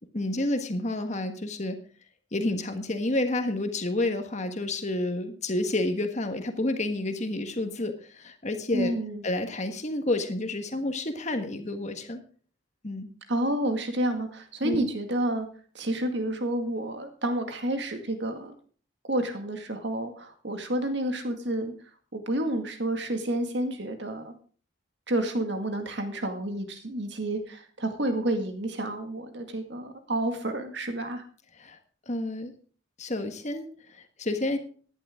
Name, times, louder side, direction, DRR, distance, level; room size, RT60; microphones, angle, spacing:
voice 1, 0.1-1.8 2.3-8.9 9.2-12.2 12.8-13.1 14.6-14.9 31.5-31.8 32.1-32.5 33.0-34.6, left 2 dB, 35° left, 7 dB, 1.5 m, -30 dB
voice 2, 8.7-9.2 13.3-15.5 15.7-18.6 19.1-21.7 22.1-24.3 25.1-31.2, right 1 dB, 55° right, 6 dB, 2.1 m, -30 dB
15.0 x 11.0 x 3.7 m, 0.43 s
head